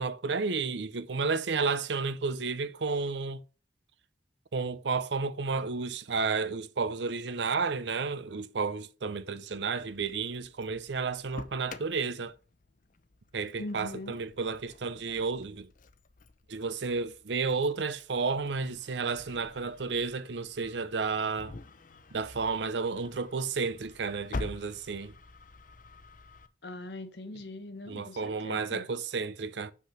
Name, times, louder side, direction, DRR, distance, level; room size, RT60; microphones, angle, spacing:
voice 1, 0.0-3.4 4.5-12.3 13.3-15.7 16.5-21.5 22.1-25.1 27.9-29.7, right 4 dB, 75° right, 0.7 m, -32 dB
Engine starting, 9.5-26.5, left 3 dB, 50° left, 0.7 m, -47 dB
voice 2, 13.6-14.2 26.6-28.9, left 2 dB, 65° left, 1.2 m, -41 dB
6.0 x 5.9 x 5.7 m
head